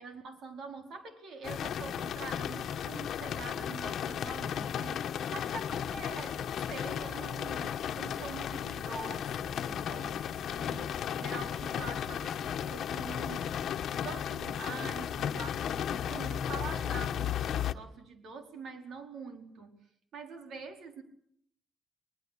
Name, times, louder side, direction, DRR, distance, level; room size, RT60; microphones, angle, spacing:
voice 1, 0.0-13.7 14.0-19.8 20.1-21.0, right 4 dB, 70° right, 6 dB, 4.6 m, -45 dB
sound 1, 1.4-17.7, left 9 dB, 70° left, 1.2 m, -35 dB
22.5 x 21.0 x 8.5 m, 0.67 s
cardioid pair, 90°, 0 cm